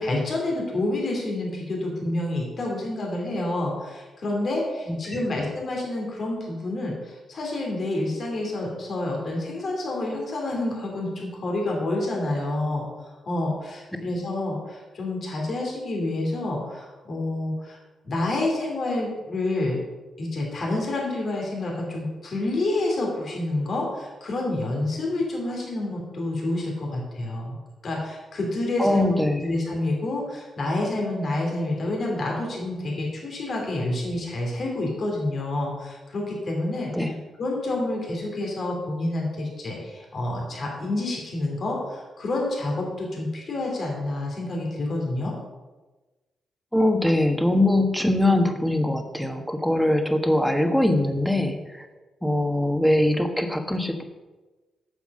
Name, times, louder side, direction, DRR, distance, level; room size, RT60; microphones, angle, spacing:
voice 1, 0.0-12.9 13.3-17.8 18.0-19.8 20.2-27.6 27.8-29.1 29.4-37.1 37.4-45.3, left 2 dB, 55° left, -1 dB, 2.7 m, -28 dB
voice 2, 4.9-5.2 28.8-29.5 36.9-37.1 46.7-51.9 52.2-54.0, left 1 dB, ahead, 6 dB, 1.3 m, -22 dB
8.1 x 7.0 x 5.4 m, 1.2 s
supercardioid pair, 60°, 0 cm